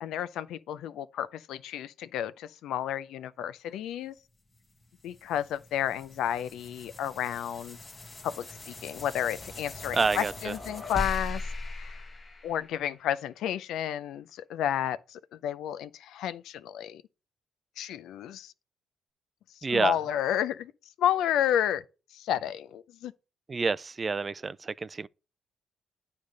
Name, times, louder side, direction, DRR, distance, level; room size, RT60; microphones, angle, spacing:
voice 1, 0.0-4.1 5.0-7.8 8.2-11.4 11.8-12.0 12.4-17.0 17.8-18.5 19.7-20.7 21.0-21.8 22.1-23.1, left 10 dB, 85° left, 0.5 m, -31 dB
sound 1, 4.5-13.1, left 2 dB, 30° left, 1.4 m, -41 dB
voice 2, 9.9-10.5 19.6-20.0 23.5-25.1, right 4 dB, 30° right, 0.3 m, -28 dB
9.4 x 3.4 x 6.4 m
cardioid pair, 90°, 0 cm